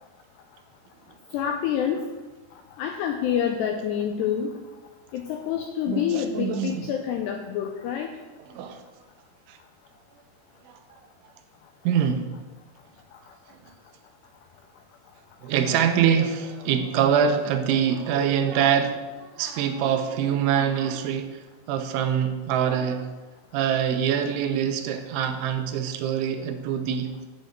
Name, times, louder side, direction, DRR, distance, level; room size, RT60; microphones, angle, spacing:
voice 1, 1.3-2.1 2.8-4.6 5.1-8.2, left 9 dB, 85° left, 5 dB, 2.4 m, -27 dB
voice 2, 5.9-6.9 8.5-8.8 9.5-9.6 10.7-10.8 11.8-12.3 15.4-21.4 21.7-23.1 23.5-27.3, right 8 dB, 80° right, 7 dB, 3.1 m, -24 dB
8.8 x 6.8 x 7.9 m, 1.2 s
omnidirectional pair, 5.6 m